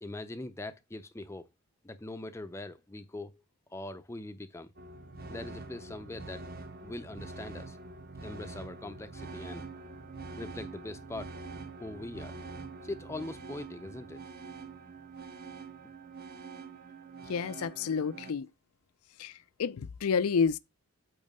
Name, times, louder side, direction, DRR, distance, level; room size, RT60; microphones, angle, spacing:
voice 1, 0.0-1.5 1.8-3.4 3.7-4.7 5.3-6.5 6.8-7.8 8.2-9.6 10.4-11.3 11.8-12.4 12.8-14.2, left 2 dB, 10° left, 0.5 m, -42 dB
sound 1, 4.8-18.3, right 3 dB, 45° right, 0.9 m, -45 dB
voice 2, 17.3-18.5 19.2-20.6, left 6 dB, 80° left, 0.4 m, -30 dB
8.8 x 3.1 x 5.3 m
head